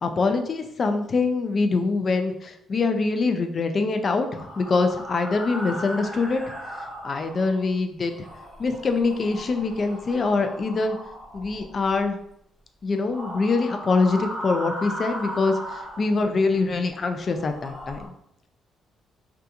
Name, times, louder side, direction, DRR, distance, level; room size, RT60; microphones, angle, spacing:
voice 1, 0.0-6.4 7.0-8.3 8.6-11.0 11.3-12.2 12.8-18.1, left 3 dB, 45° left, 7 dB, 0.3 m, -24 dB
sound 1, 4.3-7.7 8.1-12.1 13.0-16.6 17.1-18.1, equal, 5° right, 0.7 m, -37 dB
2.3 x 2.3 x 2.7 m, 0.76 s
cardioid pair, 90°, 0 cm